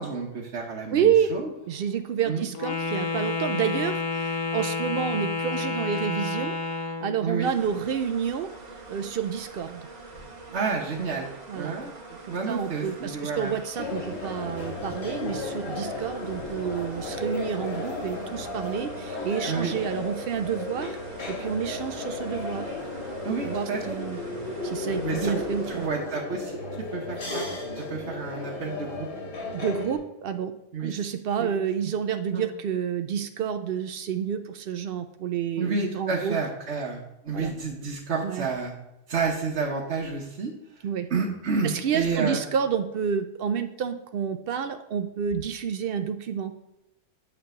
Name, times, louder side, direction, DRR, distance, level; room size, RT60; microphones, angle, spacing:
voice 1, 0.0-1.5 2.3-2.5 7.2-7.5 10.5-11.9 12.3-13.5 19.5-19.7 23.2-24.0 25.0-26.5 26.9-27.4 27.7-29.1 30.7-30.9 31.4-31.5 32.3-32.5 35.6-38.7 39.1-40.5 41.1-42.4, right 4 dB, 55° right, -1 dB, 1.1 m, -30 dB
voice 2, 0.9-1.3 1.7-6.5 7.0-8.5 8.9-9.9 11.5-11.7 12.3-21.0 21.3-22.7 23.4-24.2 24.6-25.9 29.5-30.5 30.8-36.4 37.3-37.5 38.2-38.5 40.8-41.1 41.6-46.5, right 8 dB, 80° right, 8 dB, 0.5 m, -29 dB
Wind instrument woodwind instrument, 2.5-7.2, left 4 dB, 75° left, 1.4 m, -29 dB
sound 1, 7.4-25.9, right 3 dB, 30° right, 1.2 m, -44 dB
sound 2, 13.7-30.0, left 2 dB, 45° left, 3.2 m, -34 dB
8.9 x 3.3 x 6.7 m, 0.90 s
omnidirectional pair, 1.5 m